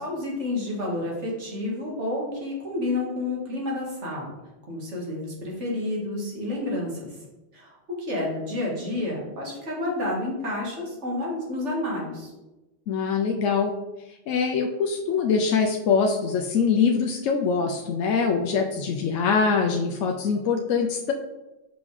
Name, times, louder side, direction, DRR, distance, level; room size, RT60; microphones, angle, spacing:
voice 1, 0.0-4.3 4.7-7.2 7.5-12.3, left 2 dB, 70° right, -3 dB, 2.1 m, -30 dB
voice 2, 12.9-13.7 14.3-21.1, left 5 dB, 85° left, 2 dB, 1.0 m, -23 dB
5.9 x 5.4 x 3.3 m, 1.0 s
omnidirectional pair, 1.3 m